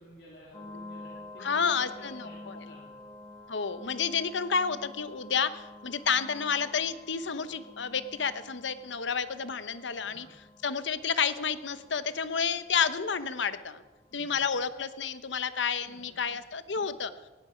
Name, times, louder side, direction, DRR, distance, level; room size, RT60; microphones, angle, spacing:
voice 1, 0.0-3.0 10.0-10.3 14.1-14.4 15.7-16.4 16.7-16.9, equal, 60° left, -5 dB, 3.6 m, -53 dB
sound 1, 0.5-14.2, left 2 dB, 20° left, 1.2 m, -49 dB
voice 2, 1.4-2.6 3.5-10.3 10.6-13.8 14.1-17.1, left 6 dB, 90° left, 13 dB, 0.9 m, -30 dB
18.5 x 15.0 x 5.1 m, 1.2 s
head